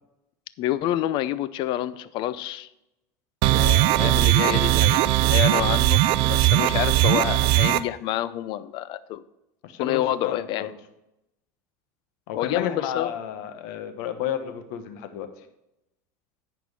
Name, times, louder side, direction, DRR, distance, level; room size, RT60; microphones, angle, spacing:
voice 1, 0.6-2.7 4.0-9.2 9.8-10.7 12.3-13.1, left 13 dB, 55° left, 15 dB, 0.6 m, -28 dB
sound 1, 3.4-7.8, right 16 dB, 60° right, 0.5 m, -19 dB
voice 2, 3.5-3.9 9.6-10.7 12.3-15.3, left 9 dB, 75° left, 8 dB, 1.3 m, -32 dB
10.0 x 4.7 x 7.0 m, 0.88 s
supercardioid pair, 120°, 10 cm